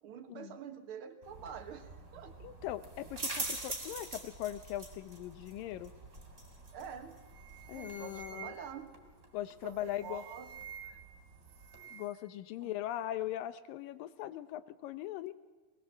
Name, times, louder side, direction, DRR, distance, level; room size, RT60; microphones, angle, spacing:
voice 1, 0.0-2.4 6.7-7.2 7.7-8.9 9.6-10.5 10.8-11.0 12.6-12.7, right 7 dB, 50° right, 8 dB, 1.8 m, -47 dB
sound 1, 1.2-11.8, right 2 dB, 20° right, 3.1 m, -45 dB
voice 2, 2.4-5.9 7.7-8.5 9.3-10.2 11.9-15.3, left 13 dB, 85° left, 13 dB, 2.6 m, -40 dB
sound 2, 6.7-6.9 7.2-8.9 9.7-11.2 11.4-12.2, right 8 dB, 85° right, 0.8 m, -50 dB
22.0 x 19.5 x 7.5 m, 1.4 s
omnidirectional pair, 3.9 m